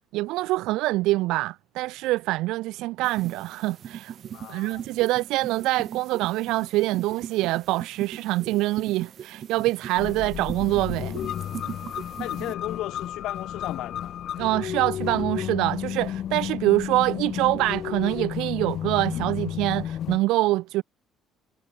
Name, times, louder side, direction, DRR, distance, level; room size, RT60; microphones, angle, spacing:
voice 1, 0.1-4.2 4.5-11.2 14.4-20.8, right 18 dB, 85° right, 1.4 m, -25 dB
sound 1, 3.0-12.5, right 9 dB, 45° right, 2.0 m, -39 dB
voice 2, 4.3-4.8 12.2-14.1, left 16 dB, 75° left, 6.6 m, -35 dB
sound 2, 10.0-20.2, left 10 dB, 50° left, 0.5 m, -32 dB
cardioid pair, 145°, 0 cm